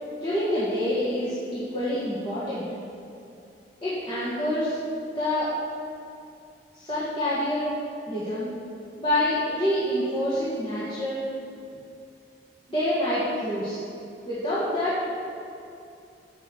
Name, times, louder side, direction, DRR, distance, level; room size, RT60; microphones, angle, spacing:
voice 1, 0.2-2.6 3.8-4.8 5.1-5.5 6.7-7.7 8.1-8.5 9.0-11.2 12.7-13.8 14.2-15.1, left 1 dB, 30° left, -10 dB, 1.7 m, -27 dB
7.3 x 6.9 x 6.4 m, 2.6 s
head